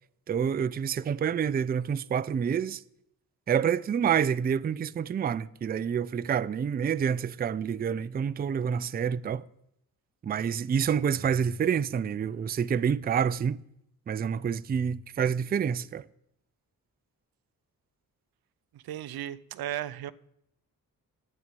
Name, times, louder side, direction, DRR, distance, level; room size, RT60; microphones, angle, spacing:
voice 1, 0.3-2.8 3.5-9.4 10.2-13.6 14.1-16.1, right 7 dB, 30° right, 0.3 m, -28 dB
voice 2, 18.7-20.1, right 12 dB, 85° right, 0.6 m, -35 dB
9.4 x 8.6 x 6.9 m
cardioid pair, 95°, 35 cm